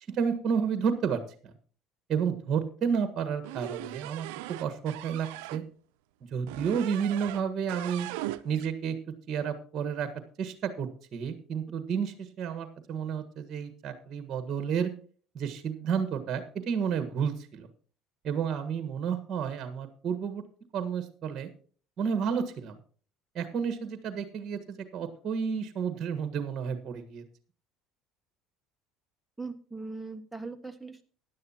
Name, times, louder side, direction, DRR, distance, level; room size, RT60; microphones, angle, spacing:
voice 1, 0.1-1.5 2.1-5.6 6.3-8.1 8.4-10.1 10.4-14.9 15.3-17.7 18.2-20.4 20.7-21.5 22.0-22.8 23.3-27.2, right 7 dB, 45° right, 9 dB, 1.5 m, -31 dB
sound 1, 3.4-5.6 6.5-7.4 7.7-8.7, right 16 dB, 80° right, 0.5 m, -39 dB
voice 2, 29.4-31.0, right 3 dB, 5° right, 4 dB, 1.5 m, -40 dB
16.0 x 10.5 x 2.9 m, 0.42 s
supercardioid pair, 90°, 0 cm